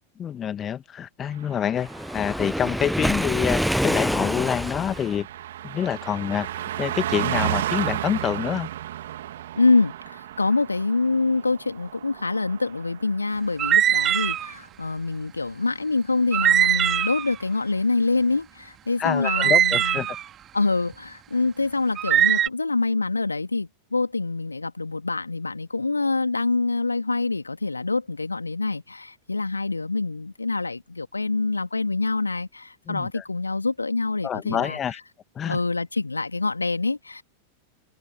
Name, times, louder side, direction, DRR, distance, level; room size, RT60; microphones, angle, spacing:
voice 1, 0.2-5.3 5.6-6.5 6.8-8.7 19.0-20.2 32.9-33.2 34.2-35.0 35.4-35.6, left 9 dB, 25° left, 2.0 m, -27 dB
Car passing by, 1.3-13.2 13.5-13.8, right 12 dB, 60° right, 2.9 m, -33 dB
Waves surf, 1.8-5.2, equal, ahead, 0.5 m, -26 dB
voice 2, 9.6-20.0 20.5-34.8 35.5-37.2, left 3 dB, 80° left, 3.0 m, -25 dB
sound 1, 13.6-14.5 16.3-17.3 19.2-20.2 22.0-22.5, right 10 dB, 30° right, 2.2 m, -21 dB
figure-of-eight pair, 90°, 0 cm